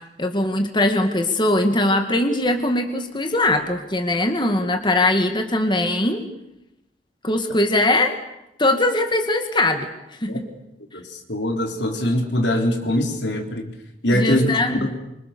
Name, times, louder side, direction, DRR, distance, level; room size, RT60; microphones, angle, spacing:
voice 1, 0.2-6.2 7.2-8.1 8.6-10.5 14.1-14.8, left 1 dB, 25° left, 5 dB, 2.0 m, -21 dB
voice 2, 10.9-13.8 14.0-15.0, left 1 dB, 80° left, 4 dB, 3.9 m, -23 dB
26.5 x 25.0 x 6.9 m, 0.90 s
head